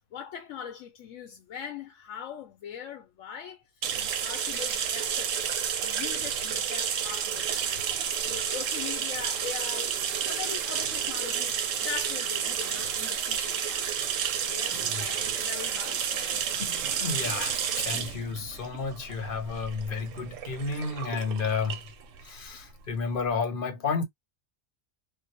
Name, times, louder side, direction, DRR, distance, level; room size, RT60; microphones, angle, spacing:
voice 1, 0.1-7.8 8.3-10.0 10.3-13.9 14.3-16.5 17.3-17.4, left 9 dB, 90° left, 1.0 m, -41 dB
sound 1, 3.8-23.2, right 8 dB, 85° right, 1.0 m, -31 dB
voice 2, 14.7-15.2 16.7-21.8 22.2-24.0, left 4 dB, 50° left, 0.8 m, -32 dB
2.7 x 2.1 x 2.8 m
omnidirectional pair, 1.3 m